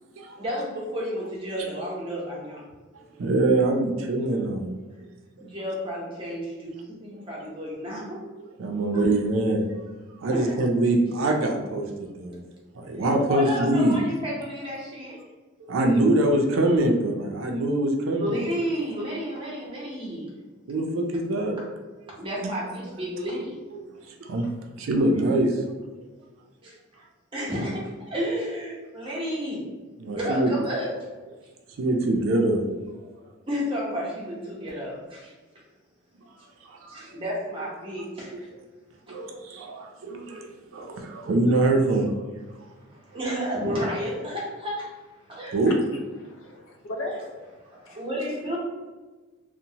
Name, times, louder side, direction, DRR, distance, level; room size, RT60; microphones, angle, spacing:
voice 1, 0.4-2.6 5.4-8.2 8.9-9.0 10.3-10.6 13.3-15.2 18.2-20.2 22.2-23.5 26.6-26.7 27.3-29.6 30.0-30.9 33.5-35.3 36.9-38.5 42.9-44.9 45.3-45.5 47.8-48.6, equal, 25° right, -5 dB, 0.7 m, -31 dB
voice 2, 3.1-4.8 8.6-9.7 10.2-12.4 12.8-14.0 15.6-18.5 20.7-21.6 22.4-22.5 23.7-23.8 24.2-24.5 24.8-25.6 30.0-30.5 31.8-32.7 36.7-37.1 39.1-42.1 45.5-45.8, right 1 dB, 70° right, 2 dB, 0.4 m, -24 dB
voice 3, 46.2-47.3 47.9-48.0, left 1 dB, 75° left, 1 dB, 0.5 m, -36 dB
2.8 x 2.1 x 2.7 m, 1.3 s
head